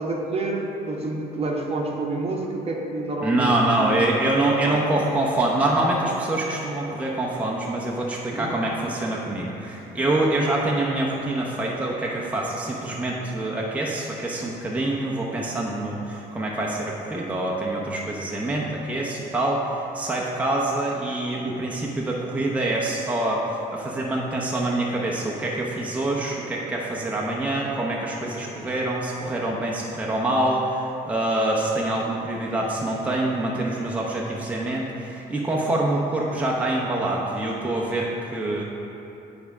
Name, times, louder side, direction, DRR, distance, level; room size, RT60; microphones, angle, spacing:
voice 1, 0.0-4.0 4.6-4.8 8.3-8.5, right 2 dB, 35° right, 0 dB, 1.0 m, -28 dB
voice 2, 3.2-38.6, right 1 dB, 10° right, -3 dB, 0.8 m, -25 dB
10.5 x 3.6 x 5.0 m, 2.9 s
cardioid pair, 110°, 17 cm